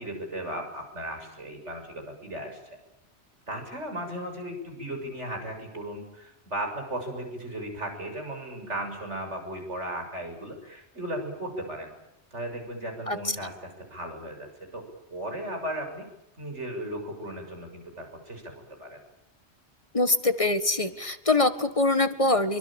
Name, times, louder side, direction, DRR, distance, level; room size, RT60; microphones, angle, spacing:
voice 1, 0.0-2.6 3.5-11.9 12.3-14.8 15.1-16.1 16.4-18.5 18.8-19.0, right 1 dB, 80° right, 3 dB, 7.3 m, -36 dB
voice 2, 19.9-22.6, left 2 dB, 30° left, 10 dB, 1.6 m, -24 dB
24.5 x 24.0 x 8.9 m, 0.85 s
omnidirectional pair, 1.2 m